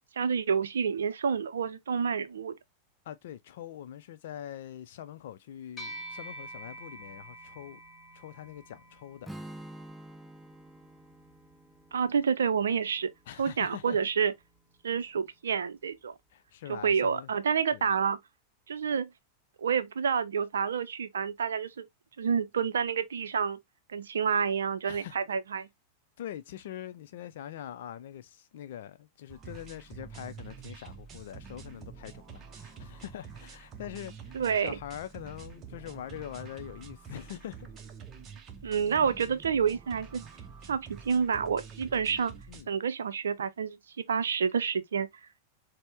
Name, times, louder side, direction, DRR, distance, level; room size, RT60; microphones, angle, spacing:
voice 1, 0.2-2.5 11.9-13.1 13.4-14.3 14.8-16.1 16.7-18.2 18.7-19.1 19.6-21.9 22.2-23.6 23.9-25.7 34.3-34.8 38.6-40.2 40.7-42.3 42.7-45.1, right 6 dB, 65° right, 0.5 m, -29 dB
voice 2, 3.1-7.8 8.1-9.3 13.3-14.1 16.3-17.3 17.7-17.9 24.9-25.1 26.2-37.7 42.5-42.7, left 11 dB, 55° left, 0.5 m, -43 dB
sound 1, 5.8-15.4, right 1 dB, 15° left, 1.8 m, -49 dB
Strum, 9.2-13.4, right 1 dB, 5° right, 0.4 m, -48 dB
sound 2, 29.3-42.6, right 6 dB, 30° right, 0.8 m, -47 dB
4.2 x 2.1 x 3.2 m
figure-of-eight pair, 90°, 0 cm